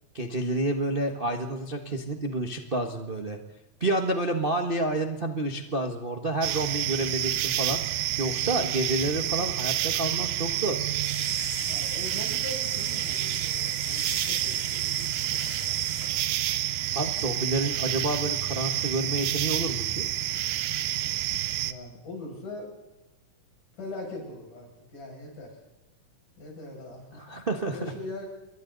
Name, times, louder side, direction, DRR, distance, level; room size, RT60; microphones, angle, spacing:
voice 1, 0.1-3.4 3.8-10.8 16.9-20.0 27.2-27.9, right 2 dB, 60° right, 4 dB, 0.5 m, -29 dB
sound 1, 6.4-21.7, right 13 dB, 80° right, 2.3 m, -29 dB
sound 2, 11.0-16.3, left 1 dB, 40° left, 8.3 m, -41 dB
voice 2, 11.7-15.5 21.6-22.7 23.8-25.6 26.4-27.2 27.7-28.3, left 2 dB, 75° left, 0 dB, 8.2 m, -41 dB
29.5 x 22.5 x 4.0 m, 1.1 s
omnidirectional pair, 3.7 m